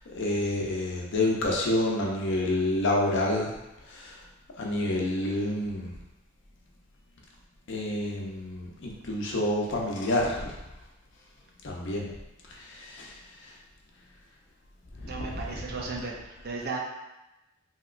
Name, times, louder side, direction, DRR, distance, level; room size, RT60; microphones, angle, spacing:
voice 1, 0.0-3.5 3.8-4.2 4.6-5.9 7.7-10.6 11.6-12.1 12.5-13.6 14.9-15.7, left 1 dB, 60° left, -2 dB, 0.6 m, -29 dB
voice 2, 15.1-16.8, right 4 dB, 50° right, 0 dB, 0.5 m, -35 dB
2.9 x 2.9 x 2.4 m, 0.97 s
head